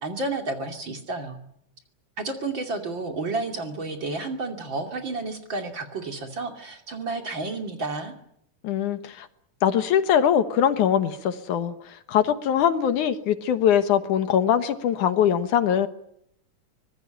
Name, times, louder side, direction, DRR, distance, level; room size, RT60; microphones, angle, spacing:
voice 1, 0.0-1.4 2.2-8.1, right 3 dB, 40° right, 5 dB, 3.1 m, -31 dB
voice 2, 8.6-9.3 9.6-11.7 12.1-15.9, left 9 dB, 70° left, 10 dB, 2.7 m, -22 dB
24.5 x 20.0 x 9.0 m, 0.74 s
omnidirectional pair, 3.7 m